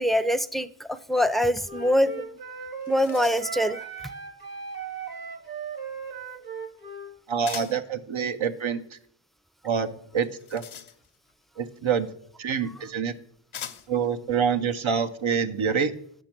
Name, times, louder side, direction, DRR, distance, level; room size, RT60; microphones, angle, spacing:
voice 1, 0.0-2.2 2.9-3.9, equal, ahead, 14 dB, 0.5 m, -24 dB
Wind instrument woodwind instrument, 1.6-7.1, right 5 dB, 50° right, 1.3 m, -37 dB
sound 1, 2.3-2.4 2.7-3.7 7.4-7.9 10.1-11.3 12.4-12.5 13.5-14.1, left 8 dB, 85° left, 0.8 m, -41 dB
voice 2, 7.3-9.0 9.6-10.6 11.6-12.1 12.4-13.1 13.9-15.9, right 6 dB, 80° right, 9 dB, 0.8 m, -26 dB
8.1 x 6.1 x 5.9 m, 0.64 s
cardioid pair, 45°, 48 cm